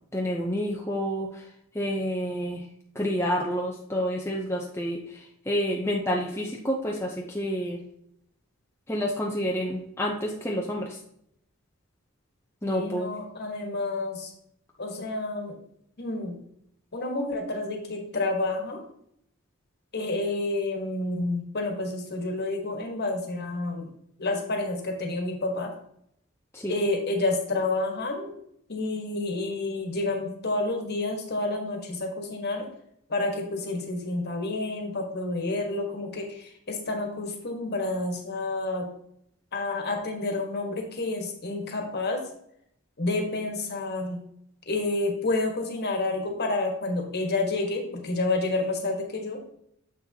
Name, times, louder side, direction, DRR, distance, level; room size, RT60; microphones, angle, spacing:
voice 1, 0.1-1.5 1.7-2.7 2.9-7.8 8.9-11.0 12.6-13.1 26.5-26.8, equal, 10° left, -1 dB, 0.6 m, -29 dB
voice 2, 12.6-14.3 14.8-15.5 16.0-16.4 16.9-18.8 19.9-23.9 24.2-25.7 26.7-28.3 28.7-32.7 33.1-38.9 39.5-42.2 43.0-44.2 44.7-49.4, left 2 dB, 45° left, 2 dB, 1.4 m, -29 dB
7.2 x 6.1 x 2.8 m, 0.73 s
head